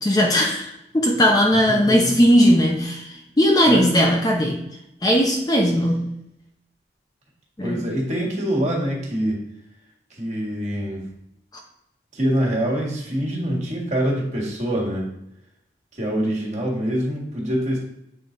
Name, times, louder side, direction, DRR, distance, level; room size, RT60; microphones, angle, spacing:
voice 1, 0.0-4.6 5.0-6.1 7.6-7.8, equal, 20° left, 1 dB, 0.6 m, -18 dB
voice 2, 1.7-2.1 3.7-3.9 7.6-9.4 10.2-11.0 12.1-15.0 15.9-17.8, equal, 40° right, -2 dB, 1.8 m, -25 dB
7.7 x 3.9 x 3.9 m, 0.82 s
head